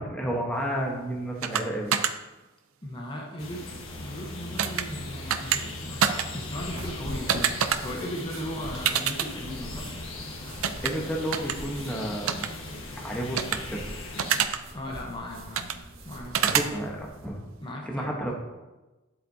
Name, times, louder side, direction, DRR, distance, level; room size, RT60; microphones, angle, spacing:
voice 1, 0.0-1.9 10.8-12.5 13.0-13.9 16.5-17.4 17.9-18.3, right 1 dB, 5° left, -2 dB, 1.1 m, -31 dB
sound 1, 1.4-1.6 1.9-2.1 4.6-4.8 5.3-5.6 6.0-6.3 7.3-7.8 8.9-9.3 10.6-10.9 11.3-11.5 12.3-12.5 13.4-13.6 14.2-14.6 15.6-15.8 16.3-16.7, right 8 dB, 90° right, 0.5 m, -25 dB
voice 2, 2.8-6.1 6.3-10.0 14.7-16.6 17.6-18.3, left 1 dB, 25° left, 0 dB, 1.1 m, -37 dB
sound 2, 3.4-14.4, left 2 dB, 70° left, 1.6 m, -39 dB
sound 3, 6.4-17.3, equal, 75° right, 1.5 m, -43 dB
9.8 x 8.1 x 2.8 m, 1.1 s
head